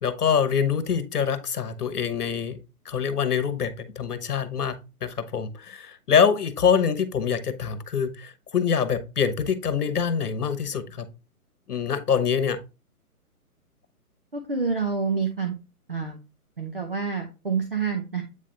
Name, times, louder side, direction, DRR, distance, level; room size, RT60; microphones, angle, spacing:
voice 1, 0.0-2.6 2.8-11.1 11.7-12.6, left 7 dB, 75° left, 11 dB, 1.2 m, -25 dB
voice 2, 14.3-15.5 15.9-16.2 16.6-18.2, right 5 dB, 40° right, 3 dB, 0.7 m, -27 dB
8.3 x 3.3 x 3.8 m, 0.29 s
hypercardioid pair, 180°, 46 cm